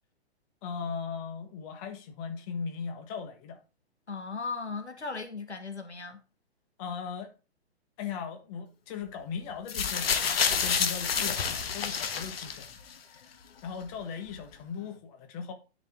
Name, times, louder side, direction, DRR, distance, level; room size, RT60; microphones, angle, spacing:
voice 1, 0.6-3.6 6.8-7.3 8.0-12.8 13.1-13.3 13.6-15.5, left 6 dB, 35° left, 1.6 m, -38 dB
voice 2, 4.1-6.2, left 4 dB, 85° left, 1.3 m, -37 dB
sound 1, 9.7-12.9 13.8-13.9, left 6 dB, 60° left, 1.1 m, -29 dB
9.9 x 5.5 x 3.7 m
figure-of-eight pair, 115°, 33 cm